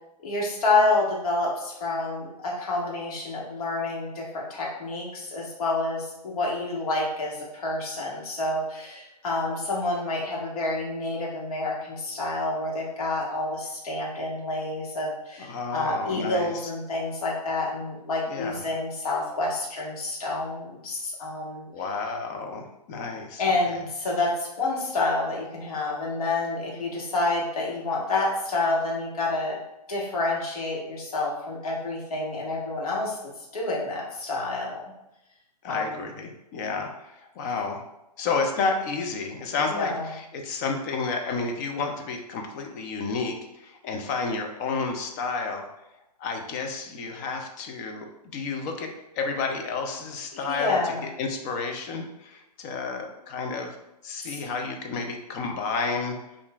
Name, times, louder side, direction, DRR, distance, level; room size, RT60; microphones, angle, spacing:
voice 1, 0.2-21.6 23.4-29.6 29.9-33.2 33.5-34.9 35.7-36.1 37.3-37.5 39.7-40.1 50.5-51.0 54.2-54.4, left 2 dB, 60° left, -3 dB, 1.2 m, -28 dB
voice 2, 15.4-16.7 18.3-18.6 21.7-23.4 23.7-23.8 35.6-37.8 38.2-45.7 46.2-53.8 54.0-56.2, left 4 dB, 25° left, 3 dB, 0.4 m, -31 dB
5.3 x 2.5 x 2.3 m, 0.91 s
hypercardioid pair, 140°, 21 cm